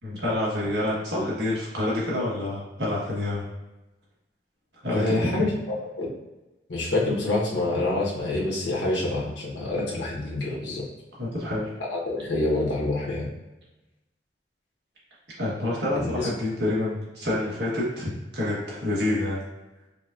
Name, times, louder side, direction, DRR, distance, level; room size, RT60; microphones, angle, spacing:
voice 1, 0.0-3.5 4.8-5.5 11.2-11.7 15.4-19.4, left 1 dB, 70° right, -6 dB, 1.3 m, -27 dB
voice 2, 4.9-5.5 6.0-6.1 6.7-10.8 11.9-13.3 15.9-16.3, left 2 dB, 90° left, -5 dB, 1.1 m, -26 dB
5.0 x 2.3 x 2.5 m, 1.0 s
head